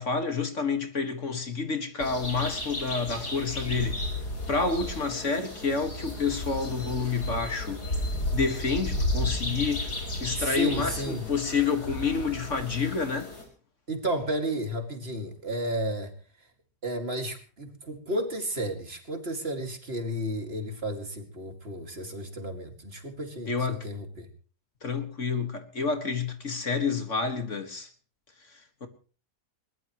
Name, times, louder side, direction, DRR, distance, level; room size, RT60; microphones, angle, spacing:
voice 1, 0.0-4.1 4.5-7.8 8.3-13.3 23.5-23.9 24.8-27.9 28.5-28.9, left 5 dB, 50° left, 2.2 m, -29 dB
sound 1, 2.0-13.4, left 1 dB, 80° left, 5.5 m, -33 dB
voice 2, 10.4-11.3 13.9-16.1 16.8-24.3, right 1 dB, 40° right, 2.6 m, -32 dB
21.5 x 20.5 x 3.1 m
omnidirectional pair, 1.7 m